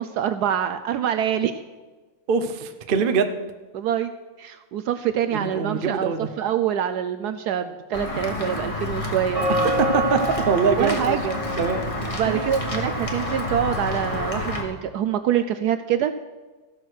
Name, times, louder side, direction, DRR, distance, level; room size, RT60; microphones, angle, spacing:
voice 1, 0.0-1.5 3.7-4.1 4.4-9.5 10.8-11.3 12.1-16.1, right 9 dB, 75° right, 9 dB, 1.0 m, -25 dB
voice 2, 2.3-3.4 5.3-6.3 9.8-10.2 10.5-11.2 11.6-11.8 12.2-12.5, right 5 dB, 55° right, 8 dB, 0.6 m, -23 dB
Walk footsteps / Bell, 7.9-14.6, left 1 dB, 20° left, 1.2 m, -27 dB
15.0 x 6.1 x 6.4 m, 1.3 s
omnidirectional pair, 2.0 m